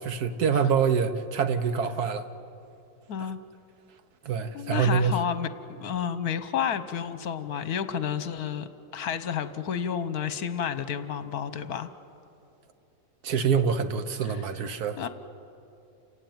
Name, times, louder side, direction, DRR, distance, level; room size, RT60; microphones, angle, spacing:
voice 1, 0.0-2.3 4.2-5.2 13.2-15.1, right 6 dB, 65° right, 10 dB, 1.5 m, -25 dB
voice 2, 3.1-3.4 4.5-5.5 5.8-8.7 8.9-11.9 14.3-14.4 15.0-15.1, left 8 dB, 65° left, 12 dB, 1.4 m, -30 dB
29.0 x 16.0 x 9.4 m, 2.7 s
omnidirectional pair, 1.9 m